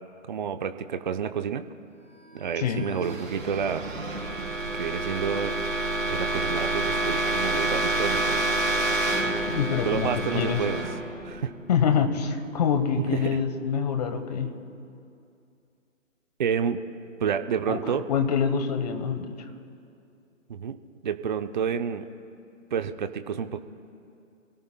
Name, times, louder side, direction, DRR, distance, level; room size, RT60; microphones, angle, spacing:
voice 1, 0.3-1.6 2.3-3.9 4.3-5.6 6.1-8.8 9.8-10.8 11.2-11.5 13.1-13.2 16.4-16.8 17.2-18.0 20.5-20.8 21.0-22.0 22.7-23.6, right 7 dB, 35° right, 9 dB, 0.7 m, -29 dB
sound 1, 2.3-12.1, right 2 dB, 80° right, 3.5 m, -28 dB
voice 2, 2.6-2.9 9.5-10.6 11.7-14.5 17.7-19.4, left 7 dB, 30° left, 8 dB, 1.2 m, -26 dB
26.5 x 17.5 x 2.2 m, 2.5 s
figure-of-eight pair, 145°, 39 cm